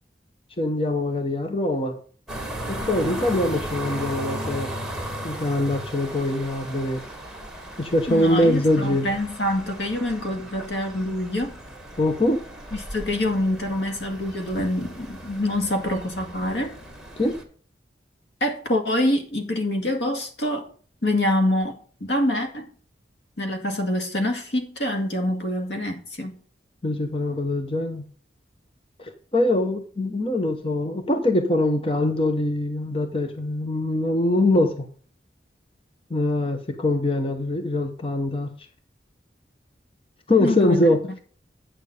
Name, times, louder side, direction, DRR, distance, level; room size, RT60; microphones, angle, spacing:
voice 1, 0.6-2.0 2.7-4.7 5.2-7.0 7.8-9.1 12.0-12.4 17.2-17.4 26.8-28.1 29.0-34.9 36.1-38.5 40.3-41.0, left 1 dB, 30° left, 0.9 m, -23 dB
sound 1, 2.3-17.4, equal, ahead, 2.0 m, -36 dB
voice 2, 8.1-11.5 12.7-16.8 18.4-20.7 21.0-22.7 23.4-26.4 40.4-40.8, left 1 dB, 80° left, 2.1 m, -25 dB
9.0 x 6.7 x 5.3 m
head